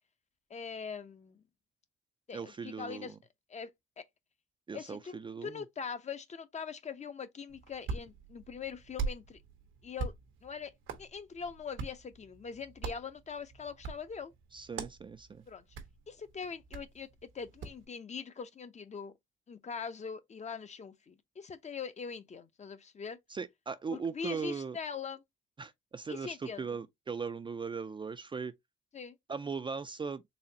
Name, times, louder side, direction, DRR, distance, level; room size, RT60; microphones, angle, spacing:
voice 1, 0.5-1.4 2.3-3.2 3.5-3.7 4.0-4.1 4.7-9.4 9.8-10.1 10.4-10.7 11.0-14.3 15.5-15.6 16.1-17.1 17.3-19.1 19.5-23.2 23.9-25.2 26.1-26.7 28.9-29.2, left 6 dB, 35° left, 0.6 m, -42 dB
voice 2, 2.3-3.2 4.7-5.6 14.5-15.4 23.3-24.8 25.6-28.5 29.3-30.2, right 5 dB, 25° right, 0.4 m, -39 dB
Hands, 7.5-17.8, right 4 dB, 80° right, 1.0 m, -43 dB
4.1 x 2.8 x 2.7 m
cardioid pair, 90°, 20 cm